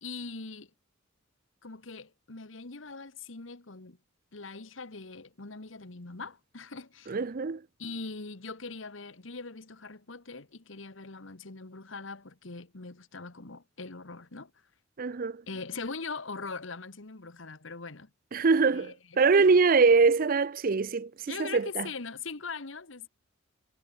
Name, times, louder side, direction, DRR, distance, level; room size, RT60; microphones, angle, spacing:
voice 1, 0.0-0.7 1.6-4.0 4.3-7.2 7.8-14.5 15.5-18.1 18.7-19.5 21.3-23.1, left 4 dB, 70° left, 1.5 m, -41 dB
voice 2, 7.1-7.6 15.0-15.4 18.3-21.9, right 4 dB, 45° right, 0.5 m, -23 dB
head